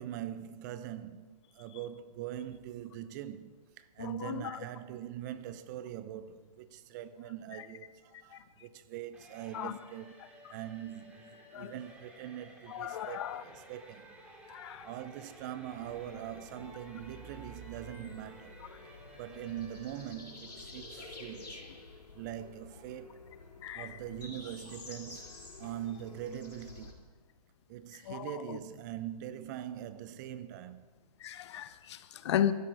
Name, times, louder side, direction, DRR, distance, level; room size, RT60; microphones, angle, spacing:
voice 1, 0.0-10.1 10.5-14.2 14.8-18.6 19.2-21.6 22.1-23.2 23.7-25.3 25.6-27.0 27.7-30.9, right 11 dB, 30° right, 0.6 m, -42 dB
voice 2, 4.0-4.6 8.3-8.4 9.5-9.7 11.5-11.7 12.7-13.4 14.5-14.9 23.6-23.9 28.1-28.6 31.2-32.5, left 10 dB, 45° left, 0.8 m, -35 dB
sound 1, 9.1-20.2, right 1 dB, 5° right, 2.3 m, -55 dB
sound 2, 15.7-26.9, left 3 dB, 90° left, 3.9 m, -50 dB
16.0 x 12.5 x 4.7 m
hypercardioid pair, 135°, 20 cm